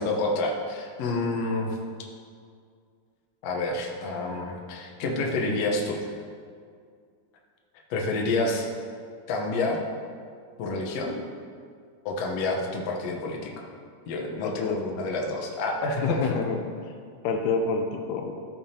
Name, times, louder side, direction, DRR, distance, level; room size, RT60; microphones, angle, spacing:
voice 1, 0.0-1.8 3.4-6.1 7.9-8.7 9.3-9.8 10.6-11.2 12.1-13.7 14.1-16.4, left 2 dB, 65° left, 0 dB, 1.9 m, -28 dB
voice 2, 14.4-14.8 16.0-16.6 17.2-18.3, left 5 dB, 85° left, 3 dB, 2.2 m, -27 dB
13.5 x 7.0 x 2.8 m, 2.2 s
omnidirectional pair, 3.7 m